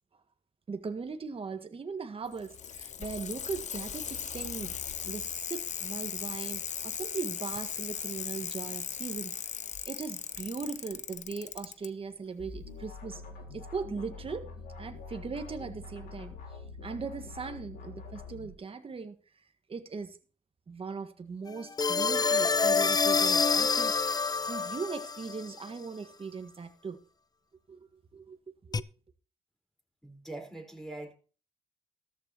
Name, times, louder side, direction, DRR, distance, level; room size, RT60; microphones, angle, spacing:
voice 1, 0.7-4.7 5.0-9.5 9.9-13.2 13.5-14.5 14.8-16.3 16.8-19.2 19.7-20.2 20.7-27.0 27.7-28.4 28.6-28.8, right 5 dB, 40° right, 1.6 m, -39 dB
Bicycle, 2.3-11.9 13.0-13.1, left 8 dB, 50° left, 0.9 m, -38 dB
sound 1, 12.4-18.5, left 3 dB, 70° left, 4.0 m, -45 dB
sound 2, 21.8-25.4 28.7-28.8, left 5 dB, 25° left, 0.6 m, -26 dB
voice 2, 30.0-31.1, right 2 dB, 5° left, 4.6 m, -42 dB
14.0 x 14.0 x 3.0 m
hypercardioid pair, 50°, 15 cm